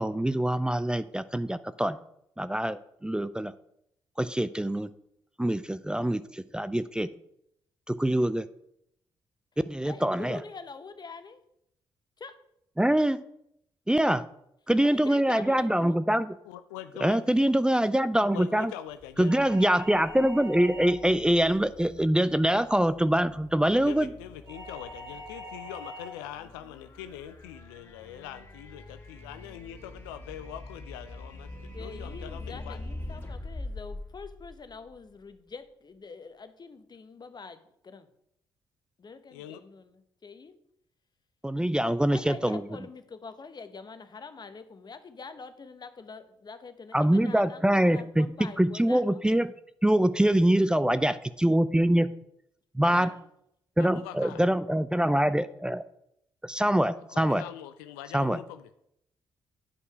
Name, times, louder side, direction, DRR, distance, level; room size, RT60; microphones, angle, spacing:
voice 1, 0.0-2.0 2.4-3.5 4.2-4.9 5.4-7.1 7.9-8.5 9.7-10.4 12.8-13.2 13.9-14.2 14.7-16.3 17.0-18.7 19.2-24.1 41.4-42.6 46.9-48.3 48.6-49.5 49.8-52.1 52.7-53.1 53.8-55.8 56.4-57.4 58.1-58.4, right 1 dB, 10° right, 14 dB, 0.5 m, -24 dB
voice 2, 9.8-11.4 12.2-12.4 14.8-16.0 31.7-38.1 39.0-40.6 42.1-49.2 52.8-53.2, left 4 dB, 40° left, 10 dB, 1.0 m, -45 dB
voice 3, 16.4-17.2 18.3-19.3 23.8-32.8 39.3-39.6 42.4-42.5 53.8-54.4 57.0-58.7, left 11 dB, 80° left, 11 dB, 0.4 m, -43 dB
sound 1, 19.0-35.1, left 2 dB, 20° left, 3.1 m, -45 dB
sound 2, 19.3-21.2 24.5-26.3, equal, 35° right, 2.9 m, -43 dB
9.8 x 5.5 x 4.7 m, 0.75 s
hypercardioid pair, 40°, 11 cm